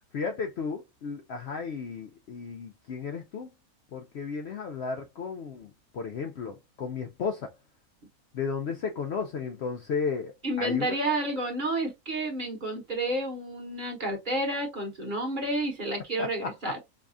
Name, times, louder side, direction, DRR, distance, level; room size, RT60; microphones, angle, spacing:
voice 1, 0.1-3.5 3.9-7.5 8.3-11.0 16.2-16.8, left 5 dB, 65° left, 0.7 m, -34 dB
voice 2, 10.4-16.8, right 1 dB, 40° right, 1.0 m, -30 dB
4.7 x 2.3 x 2.4 m
omnidirectional pair, 1.5 m